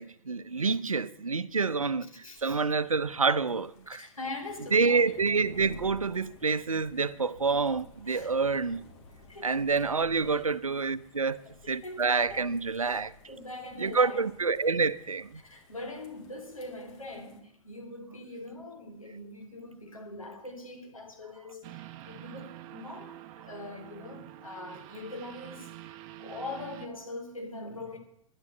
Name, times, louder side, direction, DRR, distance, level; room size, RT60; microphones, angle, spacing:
voice 1, 0.0-2.1 2.4-4.0 4.7-8.9 9.4-11.4 11.7-13.1 13.8-15.4, right 4 dB, 90° right, 0.7 m, -27 dB
voice 2, 1.6-2.6 3.9-5.1 8.1-8.4 9.3-9.8 10.2-10.4 11.2-12.5 12.8-14.3 15.4-25.7 26.2-28.0, left 2 dB, 90° left, 3.6 m, -43 dB
sound 1, 2.4-17.4, left 3 dB, 50° left, 3.1 m, -55 dB
sound 2, 21.6-26.9, right 14 dB, 40° right, 1.0 m, -47 dB
11.0 x 10.5 x 7.7 m
figure-of-eight pair, 105°, 17 cm